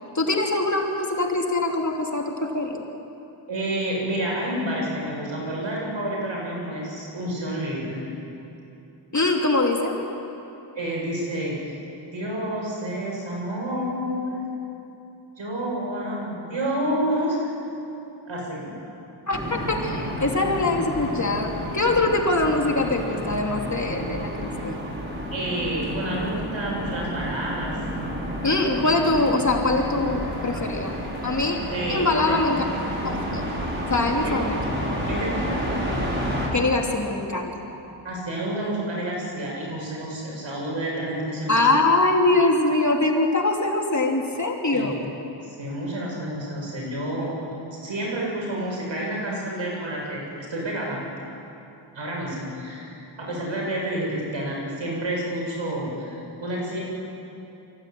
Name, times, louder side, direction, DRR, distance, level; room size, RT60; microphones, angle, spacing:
voice 1, 0.1-2.8 9.1-10.0 19.3-25.0 28.4-30.9 31.2-31.6 31.9-32.6 33.0-33.4 33.9-34.6 36.5-37.5 41.5-45.0, left 2 dB, 35° left, 1 dB, 3.1 m, -23 dB
voice 2, 3.5-8.0 10.7-11.6 12.1-14.4 15.4-17.5 18.3-18.7 25.3-27.7 31.7-32.3 35.0-35.6 38.0-41.7 44.7-45.0 45.4-47.4 47.8-51.0 51.9-56.8, right 1 dB, 65° right, -3 dB, 7.9 m, -29 dB
sound 1, 19.3-36.5, equal, 25° right, 5.8 m, -30 dB
24.0 x 16.0 x 9.2 m, 2.9 s
cardioid pair, 55°, 49 cm